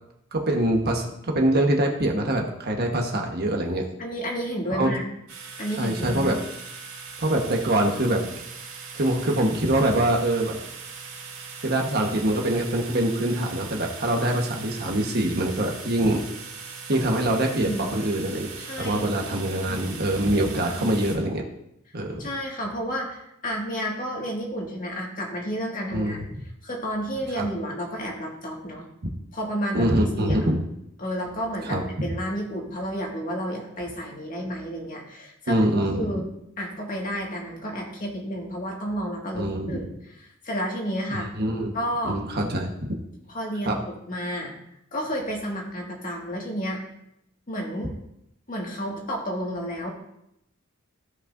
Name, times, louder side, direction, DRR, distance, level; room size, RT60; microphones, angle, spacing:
voice 1, 0.3-3.9 4.7-4.9 5.8-6.4 7.2-8.3 8.9-10.6 11.6-16.2 16.9-18.5 18.8-21.4 21.9-22.2 25.9-26.2 27.4-27.5 29.7-30.6 31.6-32.1 35.5-36.1 39.3-39.8 41.1-41.8 42.0-43.0 43.6-43.8, right 1 dB, 50° right, 2 dB, 1.3 m, -24 dB
voice 2, 4.0-5.0 5.6-6.3 17.5-17.9 18.6-19.1 20.3-20.9 22.2-26.2 26.6-28.9 29.3-30.4 31.0-36.2 36.6-39.9 40.4-41.3 41.7-42.2 43.3-44.5 44.9-46.8 47.5-47.9 48.5-49.9, equal, 40° left, -1 dB, 1.9 m, -31 dB
sound 1, 5.3-21.2, right 5 dB, 85° right, 2.2 m, -40 dB
15.0 x 5.5 x 2.6 m, 0.79 s
head